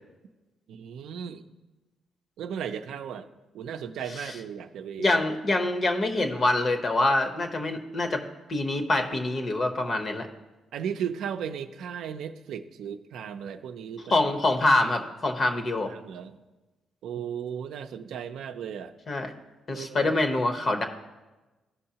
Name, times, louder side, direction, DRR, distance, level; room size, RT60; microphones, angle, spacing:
voice 1, 0.7-1.5 2.4-3.3 3.5-5.2 10.7-14.2 15.9-16.4 17.0-18.9 19.7-20.1, right 8 dB, 80° right, 7 dB, 0.4 m, -36 dB
voice 2, 5.0-8.2 8.5-10.3 14.1-15.9 19.1-19.3 19.7-20.8, left 2 dB, 45° left, 6 dB, 0.9 m, -25 dB
14.0 x 5.5 x 2.8 m, 1.1 s
cardioid pair, 90°, 0 cm